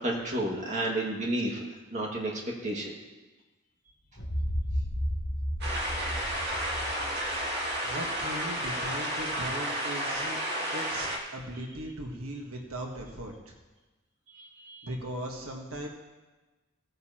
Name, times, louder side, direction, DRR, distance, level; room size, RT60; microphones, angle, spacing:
voice 1, 0.0-1.6 1.9-2.9 14.3-14.8, right 1 dB, 35° right, -2 dB, 2.0 m, -31 dB
sound 1, 4.2-8.0, equal, 80° left, 2.7 m, -33 dB
sound 2, 5.6-11.2, equal, 50° right, 2.1 m, -32 dB
voice 2, 7.8-10.4 10.7-13.5 14.8-15.9, right 1 dB, 85° right, 1 dB, 1.4 m, -38 dB
17.0 x 9.3 x 2.9 m, 1.2 s
head